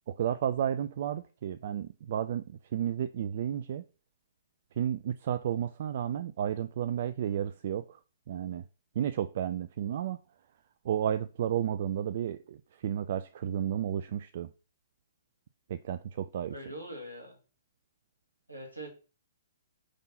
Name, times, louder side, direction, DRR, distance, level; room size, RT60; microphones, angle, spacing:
voice 1, 0.1-3.8 4.8-8.0 8.3-8.6 9.0-10.2 10.8-14.5 15.7-16.5, right 10 dB, 50° right, 0.3 m, -32 dB
voice 2, 16.5-17.4 18.5-18.9, right 1 dB, 85° right, 2.1 m, -42 dB
5.1 x 3.8 x 5.6 m
figure-of-eight pair, 120°, 0 cm